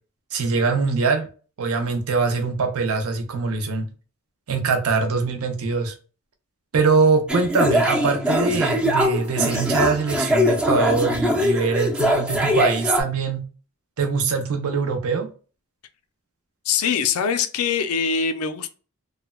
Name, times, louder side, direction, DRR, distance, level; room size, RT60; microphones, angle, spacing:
voice 1, 0.3-1.3 1.6-3.9 4.5-5.9 6.7-13.4 14.0-15.3, right 4 dB, 75° right, 0.6 m, -22 dB
sound 1, 7.3-13.0, equal, 5° right, 0.4 m, -22 dB
voice 2, 16.6-18.7, left 6 dB, 75° left, 0.4 m, -23 dB
3.2 x 2.1 x 2.2 m
head